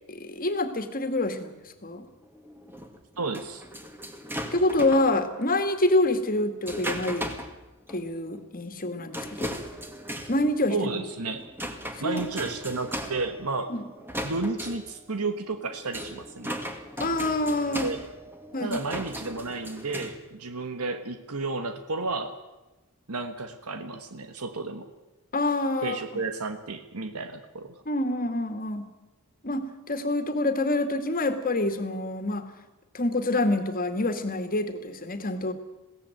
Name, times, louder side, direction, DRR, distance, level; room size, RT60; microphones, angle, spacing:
voice 1, 0.1-2.1 4.5-7.3 7.9-9.5 10.3-10.9 12.0-12.2 13.7-13.8 17.0-17.9 18.5-18.8 25.3-26.0 27.9-28.9 29.4-32.5 32.9-35.5, left 2 dB, 40° left, 8 dB, 2.1 m, -26 dB
sound 1, 2.2-5.2 6.0-7.6 7.9-8.0 8.3-8.4 9.1-20.2, equal, 10° right, 2.1 m, -37 dB
voice 2, 3.2-3.6 10.7-11.4 12.0-13.7 14.2-16.6 17.7-18.1 18.6-22.3 23.1-24.9 25.8-27.8, right 3 dB, 85° right, 8 dB, 1.4 m, -32 dB
21.5 x 17.0 x 9.2 m, 1.1 s
head